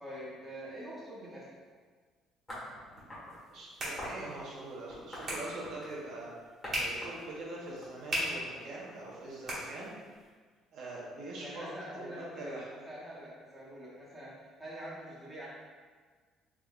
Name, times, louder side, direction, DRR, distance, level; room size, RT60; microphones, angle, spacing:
voice 1, 0.0-1.6 11.4-15.5, equal, 5° right, -9 dB, 1.0 m, -45 dB
sound 1, 2.5-3.4 4.0-4.3 4.9-6.0 6.6-6.8 7.0-8.4, left 1 dB, 15° left, 1.3 m, -44 dB
sound 2, 3.2-10.3, right 1 dB, 35° right, 1.1 m, -40 dB
voice 2, 3.5-6.3 6.7-9.9 10.7-11.7 11.9-12.7, right 2 dB, 65° right, -5 dB, 0.8 m, -43 dB
3.5 x 3.2 x 2.4 m, 1.5 s
cardioid pair, 140°, 0 cm